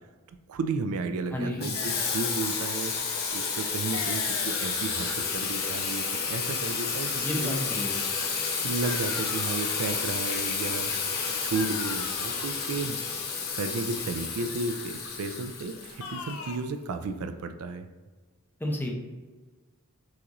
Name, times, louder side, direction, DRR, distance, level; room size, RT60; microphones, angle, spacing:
voice 1, 0.5-2.9 3.3-7.6 8.6-13.2 13.5-17.9, right 3 dB, 70° right, 9 dB, 0.3 m, -33 dB
voice 2, 1.3-1.6 7.2-8.0 18.6-18.9, left 1 dB, 10° left, -1 dB, 0.6 m, -31 dB
Water tap faucet / Sink (filling or washing), 1.6-16.4, left 5 dB, 45° left, 0.8 m, -31 dB
sound 1, 1.7-2.7 3.9-5.2 8.8-10.2 11.5-12.8 16.0-16.6, left 4 dB, 75° left, 0.5 m, -41 dB
6.0 x 2.5 x 2.9 m, 1.3 s
head